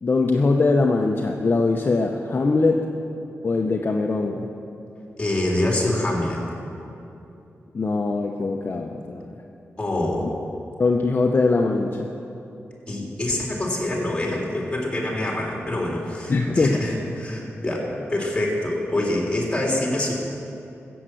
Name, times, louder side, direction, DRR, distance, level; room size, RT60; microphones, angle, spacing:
voice 1, 0.0-2.9 3.4-4.5 7.7-9.4 10.8-12.1 16.3-16.8, left 3 dB, 45° left, 2 dB, 0.9 m, -21 dB
voice 2, 5.2-6.4 9.8-10.2 12.9-20.1, left 1 dB, 20° left, -2 dB, 3.6 m, -25 dB
15.0 x 8.1 x 7.7 m, 2.8 s
cardioid pair, 80°, 5 cm